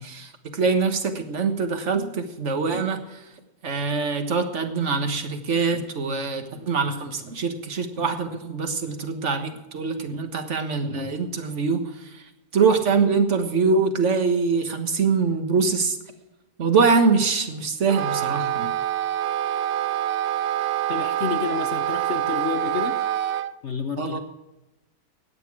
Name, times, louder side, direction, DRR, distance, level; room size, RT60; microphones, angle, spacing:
voice 1, 0.0-3.2 3.6-12.2 12.5-16.0 16.6-18.7 24.0-24.2, right 4 dB, 50° right, 7 dB, 1.6 m, -24 dB
Wind instrument woodwind instrument, 17.9-23.5, right 11 dB, 80° right, 0.5 m, -26 dB
voice 2, 20.9-23.0 23.6-24.2, left 7 dB, 55° left, 7 dB, 0.9 m, -29 dB
15.5 x 9.7 x 4.8 m, 1.0 s
omnidirectional pair, 1.7 m